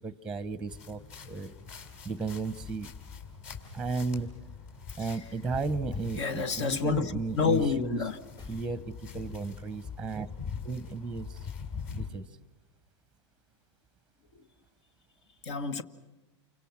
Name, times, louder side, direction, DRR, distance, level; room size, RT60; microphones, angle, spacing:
voice 1, 0.0-1.5 2.0-2.9 3.7-4.3 5.0-8.0 8.5-10.3 10.6-11.5 12.0-12.3, right 4 dB, 5° right, 0.8 m, -34 dB
sound 1, 0.7-12.1, left 6 dB, 45° left, 4.2 m, -43 dB
sound 2, 2.8-3.2 5.7-6.0 8.4-9.2, left 3 dB, 25° left, 1.6 m, -51 dB
voice 2, 6.2-7.1 7.4-8.2 14.3-14.4 15.4-15.8, left 5 dB, 70° left, 1.6 m, -28 dB
29.5 x 25.0 x 6.0 m
hypercardioid pair, 130°, 15 cm